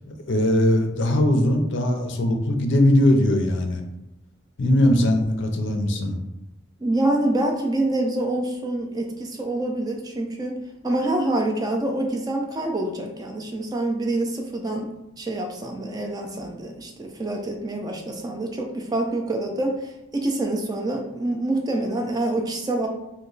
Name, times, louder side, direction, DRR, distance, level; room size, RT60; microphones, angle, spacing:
voice 1, 0.1-3.8 4.6-6.2, left 1 dB, 60° left, 4 dB, 0.4 m, -20 dB
voice 2, 6.8-10.6 10.8-22.9, right 2 dB, 20° right, 2 dB, 0.3 m, -26 dB
2.9 x 2.1 x 3.8 m, 0.90 s
head